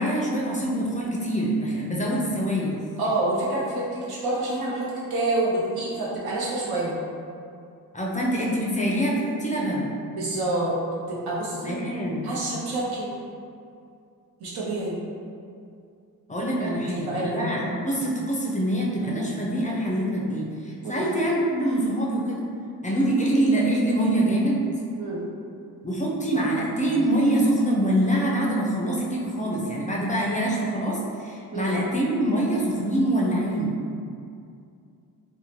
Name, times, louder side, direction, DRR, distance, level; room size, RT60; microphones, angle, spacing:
voice 1, 0.0-2.8 7.9-10.0 11.6-12.4 16.3-22.4 22.8-24.7 25.8-33.8, right 1 dB, 20° left, -4 dB, 0.4 m, -25 dB
voice 2, 3.0-6.9 10.1-10.8 11.1-11.8 12.2-13.1 14.4-15.0 16.8-17.4 20.8-21.1 25.0-25.2 31.5-31.7, right 2 dB, 80° right, -7 dB, 0.8 m, -27 dB
2.8 x 2.1 x 2.9 m, 2.4 s
cardioid pair, 80°, 37 cm